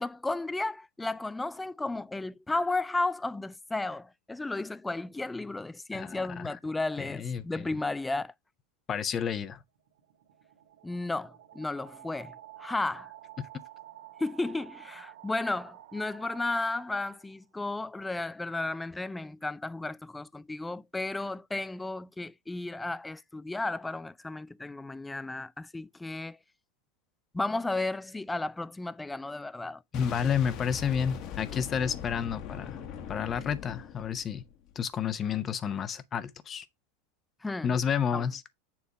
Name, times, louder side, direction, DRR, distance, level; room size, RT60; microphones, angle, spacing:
voice 1, 0.0-8.3 10.8-12.3 12.6-13.1 14.2-26.4 27.3-29.8 37.4-37.7 38.1-38.2, left 2 dB, 10° left, 0.3 m, -33 dB
voice 2, 5.9-6.6 7.0-7.7 8.9-9.6 29.9-32.8 33.1-34.4 34.7-36.7 37.6-38.4, left 7 dB, 30° left, 0.7 m, -30 dB
sound 1, 9.6-17.4, right 13 dB, 85° right, 1.4 m, -51 dB
Boom, 29.9-34.8, left 8 dB, 50° left, 1.2 m, -41 dB
7.1 x 3.4 x 4.0 m
supercardioid pair, 115°, 0 cm